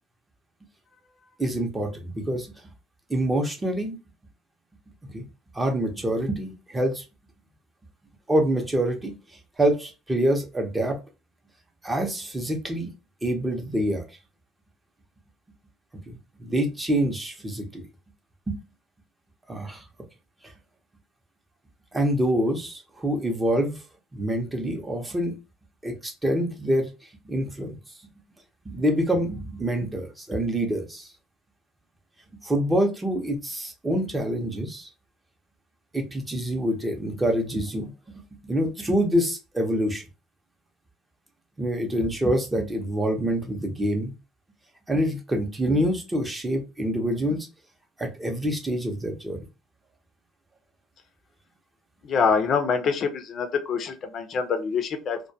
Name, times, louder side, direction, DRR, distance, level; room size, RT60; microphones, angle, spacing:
voice 1, 1.4-2.5 3.1-4.0 5.1-5.2 5.5-7.0 8.3-9.2 9.6-11.0 11.8-12.9 13.2-14.0 16.1-17.8 18.5-18.6 19.5-19.8 21.9-23.8 24.1-25.4 25.8-26.9 27.2-27.8 28.7-31.1 32.4-34.9 35.9-37.9 38.4-40.0 41.6-44.1 44.9-47.5 48.0-49.4, right 1 dB, 15° right, 3 dB, 0.6 m, -26 dB
voice 2, 52.0-55.2, left 5 dB, 45° left, 7 dB, 0.5 m, -25 dB
2.2 x 2.2 x 2.6 m, 0.28 s
cardioid pair, 130°, 0 cm